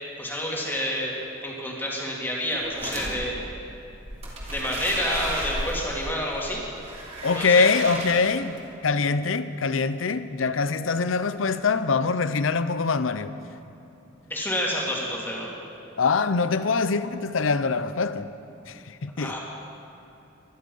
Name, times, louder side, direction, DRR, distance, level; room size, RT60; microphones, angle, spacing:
voice 1, 0.2-1.1 1.4-3.3 4.5-6.6 7.3-7.7 14.3-15.5 19.2-19.4, left 1 dB, 10° left, 2.7 m, -29 dB
sound 1, 2.5-3.1 4.0-8.6, right 1 dB, 35° right, 3.0 m, -34 dB
voice 2, 7.2-13.3 16.0-18.3 18.7-19.4, left 4 dB, 85° left, 0.7 m, -24 dB
24.0 x 11.0 x 5.5 m
head